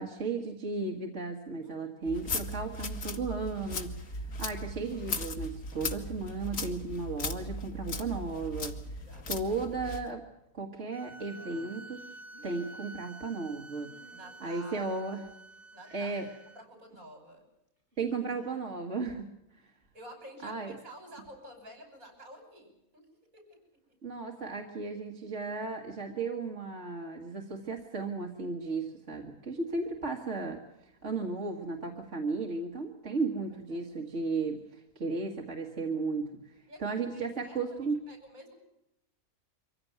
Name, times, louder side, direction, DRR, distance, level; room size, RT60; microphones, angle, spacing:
voice 1, 0.0-8.8 9.3-10.2 10.5-12.0 12.4-13.9 14.4-15.2 15.9-16.3 18.0-19.3 20.4-20.7 24.0-36.3 36.8-38.1, right 3 dB, 55° right, 2 dB, 2.0 m, -35 dB
sound 1, 2.1-10.1, left 2 dB, 90° left, 2.2 m, -37 dB
voice 2, 8.9-9.5 14.1-14.9 15.7-16.3 16.5-17.4 19.9-23.1 23.3-23.6 23.9-24.0 33.7-33.9 36.7-36.8 37.1-37.8 38.1-38.5, right 1 dB, 70° right, 5 dB, 6.5 m, -50 dB
sound 2, 10.9-16.6, right 2 dB, 10° left, 0.8 m, -50 dB
sound 3, 11.2-12.9 13.8-14.6 15.2-15.6 15.8-16.4 17.8-18.5, right 1 dB, 40° right, 6.4 m, -59 dB
24.5 x 16.0 x 9.4 m, 0.88 s
omnidirectional pair, 1.5 m